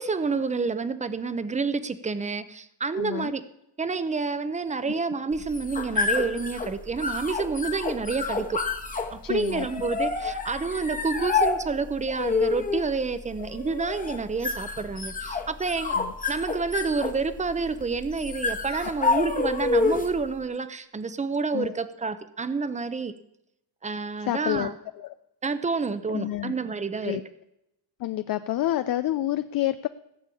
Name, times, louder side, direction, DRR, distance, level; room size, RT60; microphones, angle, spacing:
voice 1, 0.0-3.4 3.8-8.6 8.9-16.0 16.3-23.1 23.8-24.7 25.4-27.2, right 4 dB, 15° right, 13 dB, 0.7 m, -29 dB
voice 2, 2.9-3.3 4.9-5.2 9.2-9.7 10.2-10.4 15.9-16.1 18.7-18.9 21.5-21.8 24.2-25.1 26.1-26.5 27.0-27.2 28.0-29.9, left 14 dB, 55° left, 12 dB, 0.5 m, -29 dB
sound 1, 5.3-20.2, left 4 dB, 20° left, 1.3 m, -29 dB
16.0 x 7.3 x 8.4 m, 0.84 s
cardioid pair, 165°, 43 cm